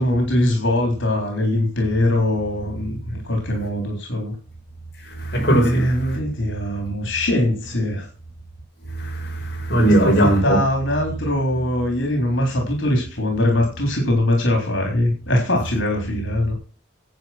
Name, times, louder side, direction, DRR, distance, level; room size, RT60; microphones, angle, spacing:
voice 1, 0.0-4.3 5.6-8.1 9.8-16.5, left 1 dB, 85° left, 3.8 m, -22 dB
voice 2, 5.2-5.9 9.0-10.6, right 1 dB, 55° left, 5.1 m, -19 dB
10.5 x 8.5 x 6.0 m
head